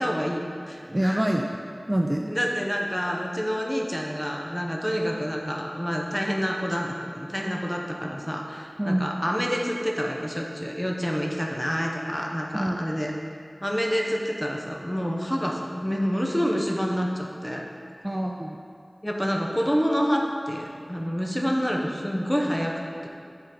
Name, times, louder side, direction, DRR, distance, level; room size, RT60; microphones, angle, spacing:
voice 1, 0.0-1.2 2.3-13.1 13.6-17.7 19.0-23.1, equal, 10° left, 0 dB, 0.8 m, -28 dB
voice 2, 0.9-1.6 1.9-2.3 8.8-9.1 12.5-12.8 18.0-18.6, right 1 dB, 20° right, 1 dB, 0.3 m, -25 dB
6.8 x 3.8 x 5.0 m, 2.4 s
wide cardioid pair, 50°, 0 cm